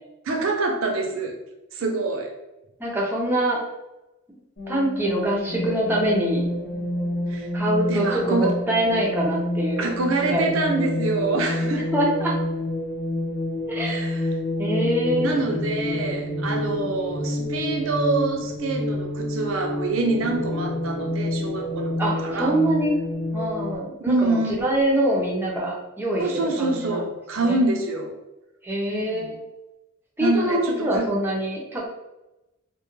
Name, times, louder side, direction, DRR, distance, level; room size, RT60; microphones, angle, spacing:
voice 1, 0.2-1.4 1.7-2.3 7.3-7.5 7.9-8.6 9.8-11.9 13.8-14.3 15.2-22.6 24.1-24.5 26.2-28.1 28.9-29.3 30.2-31.1, right 3 dB, 70° right, 3 dB, 0.5 m, -26 dB
voice 2, 2.8-3.6 4.7-6.4 7.5-9.9 10.3-10.5 11.9-12.3 13.7-14.1 14.6-15.6 16.8-16.9 22.0-23.0 23.3-26.2 26.6-27.0 27.4-27.6 28.6-29.4 30.2-31.9, right 1 dB, 10° right, -3 dB, 0.5 m, -24 dB
sound 1, 4.6-23.8, left 1 dB, 50° left, 0.8 m, -28 dB
2.2 x 2.1 x 3.0 m, 0.97 s
head